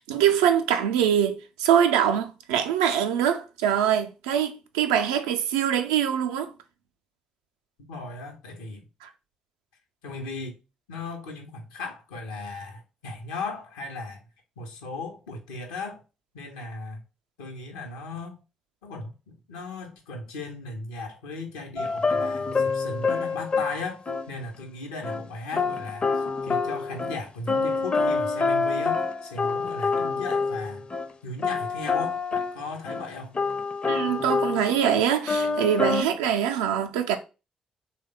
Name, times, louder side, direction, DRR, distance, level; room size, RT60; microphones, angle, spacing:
voice 1, 0.0-6.5 9.0-9.1 33.8-37.2, right 9 dB, 80° right, 0.4 m, -23 dB
voice 2, 7.9-8.8 10.0-10.6 10.9-14.2 14.6-16.0 16.3-17.0 17.4-18.4 18.8-30.9 31.2-33.4, left 3 dB, 80° left, 0.7 m, -37 dB
sound 1, 21.8-24.3 25.0-25.2 25.5-31.1 31.4-32.6 32.9-33.0 33.4-35.0 35.3-36.0, left 4 dB, 35° left, 0.5 m, -26 dB
3.3 x 2.2 x 3.6 m
hypercardioid pair, 40°, 3 cm